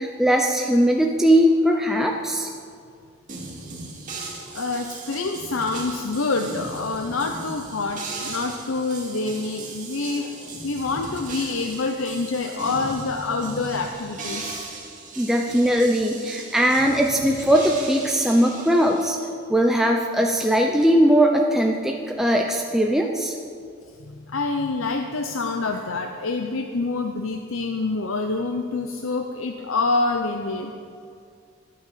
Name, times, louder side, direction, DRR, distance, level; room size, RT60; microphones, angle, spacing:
voice 1, 0.0-2.5 15.2-19.2 19.5-23.3, equal, ahead, 1 dB, 0.6 m, -20 dB
sound 1, 3.3-19.1, right 3 dB, 40° right, 2.3 m, -37 dB
voice 2, 4.4-14.6 24.0-30.7, left 3 dB, 70° left, 4 dB, 0.7 m, -27 dB
12.0 x 9.4 x 6.8 m, 2.3 s
head